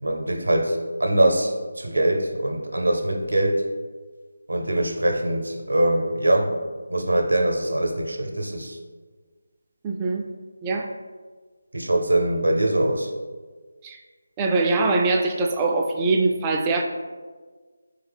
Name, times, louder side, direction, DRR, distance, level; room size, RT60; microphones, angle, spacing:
voice 1, 0.0-3.6 4.5-6.6 6.9-8.8 11.7-13.1, right 1 dB, 80° right, 3 dB, 0.6 m, -23 dB
voice 2, 9.8-10.2 10.6-10.9 13.8-14.0 14.4-16.8, right 3 dB, 15° right, 1 dB, 0.3 m, -22 dB
4.0 x 3.3 x 3.3 m, 1.4 s
figure-of-eight pair, 160°, 0 cm